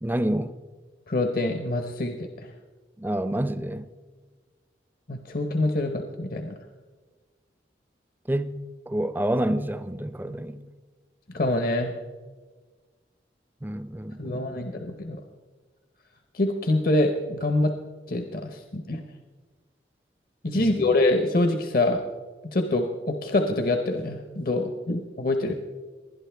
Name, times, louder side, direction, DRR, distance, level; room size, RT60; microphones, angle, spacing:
voice 1, 0.0-0.6 3.0-3.9 8.3-8.6 8.9-10.6 13.6-14.6 20.5-20.9, right 1 dB, 10° right, 0.5 m, -28 dB
voice 2, 1.1-2.5 5.1-6.6 11.3-11.9 14.2-15.2 16.3-17.7 18.1-19.1 20.4-22.0 22.4-25.5, left 2 dB, 50° left, 0.8 m, -25 dB
20.0 x 11.0 x 3.4 m
head